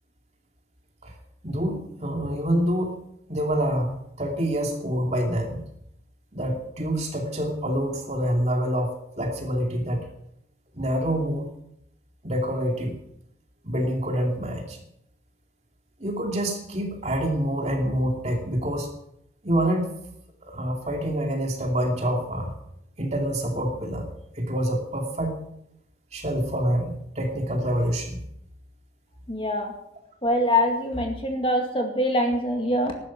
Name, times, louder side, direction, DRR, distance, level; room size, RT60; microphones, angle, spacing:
voice 1, 1.4-3.0 3.3-5.6 6.3-10.0 10.7-11.5 12.2-13.0 13.6-14.8 16.0-18.9 19.4-19.9 20.4-22.5 23.0-24.1 24.4-25.4 26.1-28.2, equal, 35° right, 2 dB, 2.8 m, -26 dB
voice 2, 29.3-29.7 30.2-32.9, left 1 dB, 30° left, 3 dB, 2.1 m, -24 dB
14.5 x 12.0 x 6.0 m, 0.76 s
head